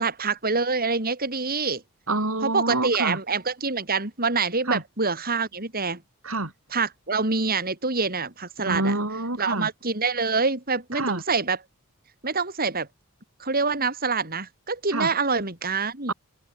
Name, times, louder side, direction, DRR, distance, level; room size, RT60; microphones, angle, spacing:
voice 1, 0.0-1.8 2.4-6.0 6.7-8.9 9.4-11.6 12.2-12.9 13.4-16.1, right 4 dB, 45° right, 5.2 m, -26 dB
voice 2, 2.1-3.2 4.7-4.8 6.2-6.5 8.6-9.7 10.9-11.2 14.9-15.1 16.1-16.2, right 2 dB, 70° right, 6.0 m, -27 dB
head